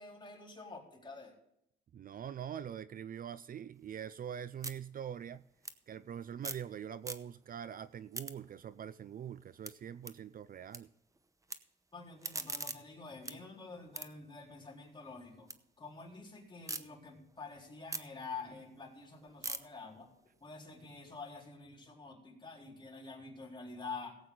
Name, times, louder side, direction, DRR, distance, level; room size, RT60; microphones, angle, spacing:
voice 1, 0.0-1.4 11.9-15.5 15.8-20.1 20.4-24.2, left 4 dB, 25° left, -2 dB, 4.1 m, -48 dB
voice 2, 1.9-5.5 5.9-10.9, right 9 dB, 45° right, 15 dB, 0.5 m, -44 dB
sound 1, 3.7-6.7 7.0-7.6 7.9-10.8 11.1-11.6 12.0-15.6 16.0-16.8 17.3-21.4, right 3 dB, 15° right, 0.9 m, -46 dB
17.0 x 8.5 x 3.8 m, 0.75 s
cardioid pair, 90°, 20 cm